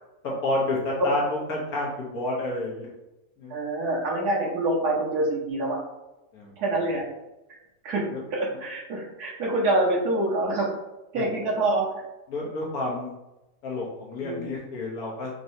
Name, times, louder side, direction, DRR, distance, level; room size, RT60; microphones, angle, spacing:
voice 1, 0.2-2.9 3.4-3.5 6.3-6.5 11.1-11.2 12.3-13.1 13.6-15.3, left 2 dB, 75° left, -4 dB, 1.6 m, -29 dB
voice 2, 3.5-5.8 6.6-7.0 7.8-10.7 11.1-12.0 14.2-14.6, right 2 dB, 80° right, -3 dB, 1.6 m, -26 dB
4.6 x 2.9 x 2.7 m, 0.97 s
omnidirectional pair, 1.6 m